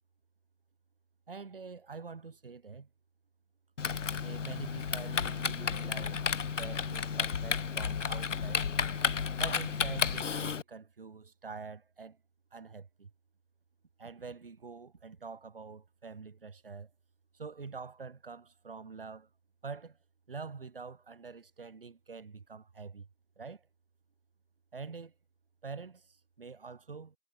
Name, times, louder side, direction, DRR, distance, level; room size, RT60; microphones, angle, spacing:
voice 1, 1.3-2.9 4.2-6.3 6.5-8.7 9.4-12.2 12.5-13.1 14.0-16.9 17.3-19.3 19.6-20.0 20.3-23.1 23.4-23.7 24.7-25.1 25.6-27.2, right 4 dB, 45° right, 4.8 m, -45 dB
Typing, 3.8-10.6, left 6 dB, 75° left, 0.9 m, -32 dB
figure-of-eight pair, 170°, 37 cm